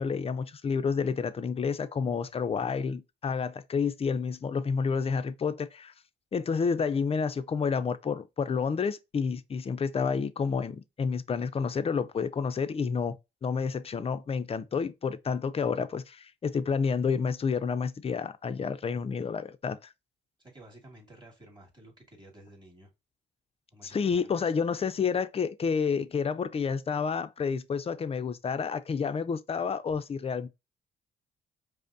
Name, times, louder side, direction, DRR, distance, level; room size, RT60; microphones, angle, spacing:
voice 1, 0.0-5.9 6.3-13.2 13.4-19.9 23.9-30.5, left 5 dB, 30° left, 0.5 m, -29 dB
voice 2, 20.4-22.9 23.7-24.5, right 1 dB, 20° right, 2.1 m, -53 dB
5.1 x 2.1 x 2.6 m
cardioid pair, 90°, 20 cm